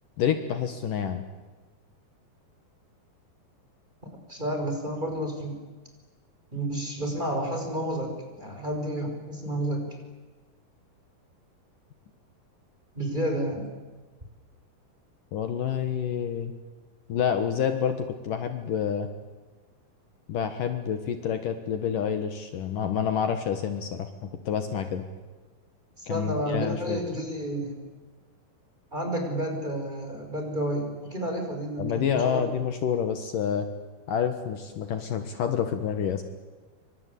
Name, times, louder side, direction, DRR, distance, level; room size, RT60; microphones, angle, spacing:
voice 1, 0.2-1.2 15.3-16.5 17.1-19.1 20.3-25.0 26.1-27.2 31.8-33.7 34.1-36.2, left 8 dB, 65° left, 8 dB, 2.9 m, -28 dB
voice 2, 4.3-5.6 6.5-9.9 12.9-13.6 26.0-27.8 28.9-32.4, right 1 dB, 10° right, 3 dB, 5.6 m, -30 dB
28.5 x 25.0 x 8.4 m, 1.3 s
omnidirectional pair, 4.4 m